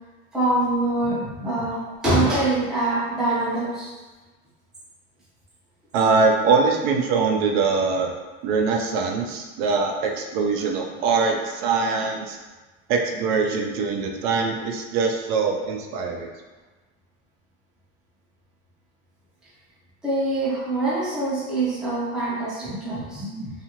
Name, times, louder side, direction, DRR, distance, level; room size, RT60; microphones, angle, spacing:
voice 1, 0.3-3.9 20.0-23.5, right 2 dB, ahead, -8 dB, 0.4 m, -24 dB
voice 2, 5.9-8.1 8.4-12.4 12.9-16.3, right 4 dB, 65° right, 2 dB, 0.5 m, -22 dB
2.7 x 2.4 x 2.9 m, 1.2 s
supercardioid pair, 145°, 35 cm